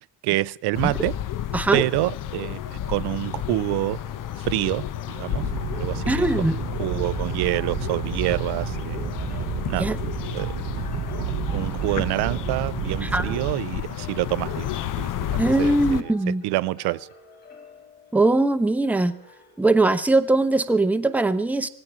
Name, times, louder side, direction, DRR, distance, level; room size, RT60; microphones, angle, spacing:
voice 1, 0.2-1.1 1.7-4.0 4.4-5.4 5.7-9.1 9.7-9.9 10.3-10.5 11.5-14.7 15.0-16.1 16.4-17.1, right 18 dB, 80° right, 0.5 m, -27 dB
sound 1, 0.7-16.0, left 11 dB, 55° left, 0.8 m, -31 dB
sound 2, 2.6-19.6, right 1 dB, 25° left, 2.5 m, -48 dB
Animal, 5.3-13.5, right 9 dB, 50° right, 0.8 m, -31 dB
voice 2, 6.1-6.6 9.8-10.0 13.0-13.4 15.4-16.4 18.1-19.1 19.6-21.7, right 2 dB, 5° right, 0.7 m, -21 dB
19.5 x 16.5 x 4.3 m
cardioid pair, 135°, 39 cm